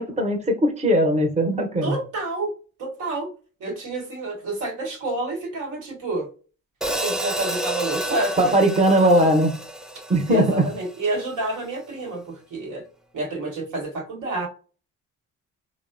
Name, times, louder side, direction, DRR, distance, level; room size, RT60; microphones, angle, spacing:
voice 1, 0.0-1.9 8.4-9.5 10.1-10.7, right 1 dB, 20° right, 3 dB, 0.7 m, -19 dB
voice 2, 1.8-2.5 2.8-3.3 3.6-6.3 7.0-8.4 9.0-9.3 10.3-12.8 13.1-14.5, right 2 dB, 85° right, 0 dB, 1.1 m, -29 dB
Hi-hat, 6.8-11.1, right 1 dB, ahead, 0.3 m, -30 dB
3.5 x 2.0 x 2.4 m, 0.37 s
cardioid pair, 90°, 30 cm